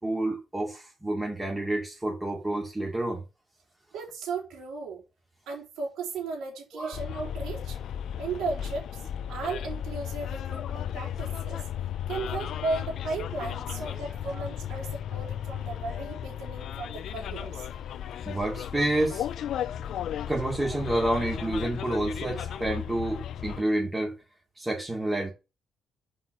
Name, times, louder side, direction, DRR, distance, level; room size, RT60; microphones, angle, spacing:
voice 1, 0.0-3.2 6.7-6.9 14.3-14.4 18.2-19.3 20.3-24.1 24.5-25.3, right 1 dB, 15° right, 3.2 m, -29 dB
voice 2, 3.9-5.0 5.5-7.8 8.2-11.7 12.1-17.7, right 3 dB, 85° right, 4.0 m, -35 dB
Bus, 6.9-23.6, left 10 dB, 70° left, 0.5 m, -35 dB
6.1 x 5.7 x 6.8 m
cardioid pair, 90°, 0 cm